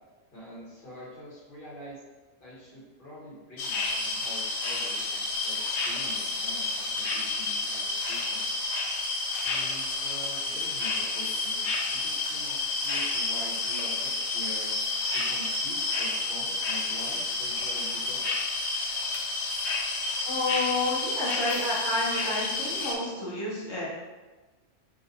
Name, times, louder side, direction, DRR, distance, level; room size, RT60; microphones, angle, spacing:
voice 1, 0.3-2.0 2.4-8.5 9.4-14.8 15.1-18.3, equal, 45° left, -7 dB, 1.1 m, -45 dB
sound 1, 3.6-22.9, left 3 dB, 70° left, 0.9 m, -30 dB
voice 2, 20.3-23.9, left 2 dB, 30° left, -7 dB, 0.6 m, -30 dB
4.0 x 2.5 x 2.7 m, 1.2 s
omnidirectional pair, 1.3 m